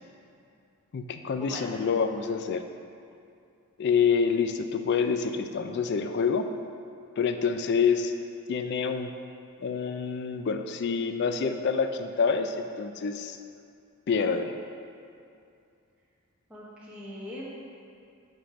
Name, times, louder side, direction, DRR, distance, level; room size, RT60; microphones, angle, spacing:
voice 1, 0.9-2.7 3.8-6.5 7.2-8.1 8.5-9.1 9.6-13.4 14.1-14.6, left 6 dB, 50° left, 8 dB, 0.3 m, -27 dB
voice 2, 16.5-17.5, equal, 5° right, -9 dB, 0.9 m, -41 dB
5.1 x 4.4 x 5.9 m, 2.5 s
head